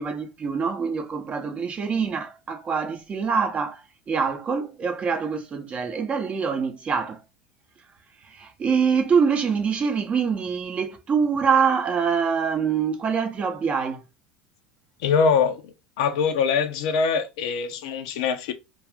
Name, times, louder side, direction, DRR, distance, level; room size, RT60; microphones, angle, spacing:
voice 1, 0.0-7.2 8.2-14.0, right 6 dB, 30° right, 0.6 m, -25 dB
voice 2, 15.0-15.6 16.0-18.5, left 5 dB, 60° left, 0.5 m, -23 dB
2.4 x 2.4 x 3.4 m
figure-of-eight pair, 75°, 4 cm